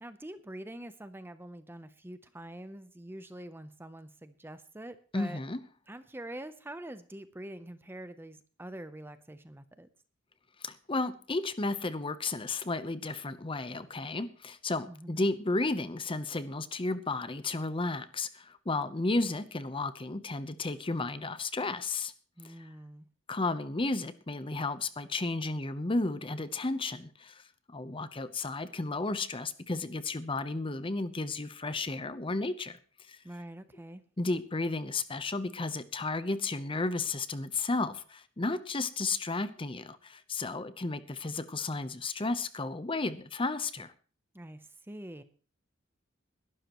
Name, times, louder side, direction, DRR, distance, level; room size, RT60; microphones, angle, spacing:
voice 1, 0.0-5.4 5.9-9.9 14.9-15.3 22.4-23.1 33.2-34.0 44.3-45.2, right 1 dB, 10° right, 12 dB, 0.7 m, -45 dB
voice 2, 5.1-5.6 10.6-22.1 22.4-22.7 23.3-27.4 27.7-32.8 33.1-33.2 34.2-43.9, left 3 dB, 25° left, 13 dB, 0.8 m, -33 dB
21.0 x 12.0 x 3.0 m, 0.38 s
head